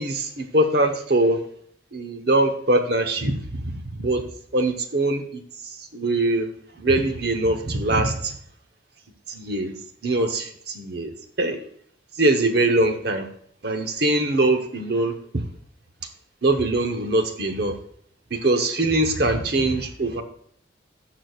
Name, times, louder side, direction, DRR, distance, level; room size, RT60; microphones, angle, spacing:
voice 1, 0.0-1.4 1.9-4.2 4.5-5.4 5.9-6.5 6.8-8.4 9.3-9.8 10.0-11.6 12.2-13.3 13.6-15.1 16.4-17.7 18.3-20.2, right 2 dB, 55° right, 5 dB, 1.0 m, -22 dB
16.0 x 6.1 x 2.4 m, 0.63 s
head